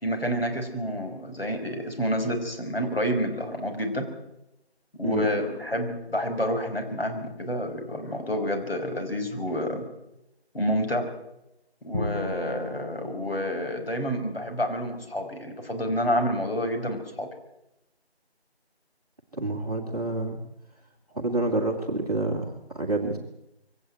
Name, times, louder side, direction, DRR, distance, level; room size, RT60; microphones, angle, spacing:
voice 1, 0.0-4.1 5.0-9.9 10.5-11.1 11.8-17.3, equal, 60° left, 4 dB, 5.6 m, -29 dB
Bowed string instrument, 11.9-15.1, left 2 dB, 35° left, 6.7 m, -37 dB
voice 2, 19.3-20.4 21.1-23.2, right 2 dB, 35° right, -2 dB, 2.3 m, -28 dB
23.0 x 17.5 x 9.3 m, 0.91 s
figure-of-eight pair, 180°, 33 cm